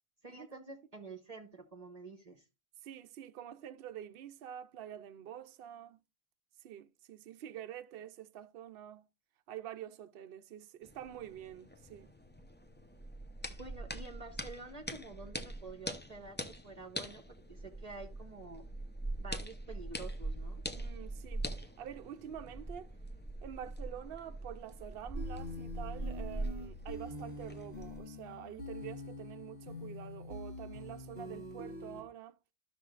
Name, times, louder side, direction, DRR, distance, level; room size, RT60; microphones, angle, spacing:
voice 1, 0.2-2.4 13.6-16.4 16.6-18.7 19.2-20.6, right 3 dB, 40° right, 0.9 m, -49 dB
voice 2, 2.8-6.0 6.6-9.0 9.5-12.1 20.8-22.9 23.4-32.4, right 10 dB, 70° right, 0.7 m, -47 dB
sound 1, 10.8-28.0, right 1 dB, 10° left, 0.6 m, -43 dB
sound 2, 25.1-32.0, left 2 dB, 70° left, 2.4 m, -45 dB
12.5 x 6.1 x 2.4 m
omnidirectional pair, 1.1 m